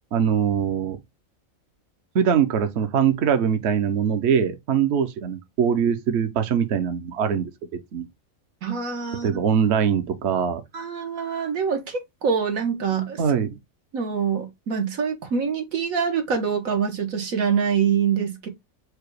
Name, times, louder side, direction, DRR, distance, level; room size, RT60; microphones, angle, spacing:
voice 1, 0.1-1.0 2.1-7.5 7.9-8.1 9.2-10.6 13.2-13.6, right 7 dB, 60° right, 0.9 m, -22 dB
voice 2, 8.6-9.3 10.7-13.2 13.9-18.5, right 6 dB, 85° right, 1.6 m, -25 dB
4.8 x 2.2 x 4.6 m
omnidirectional pair, 1.4 m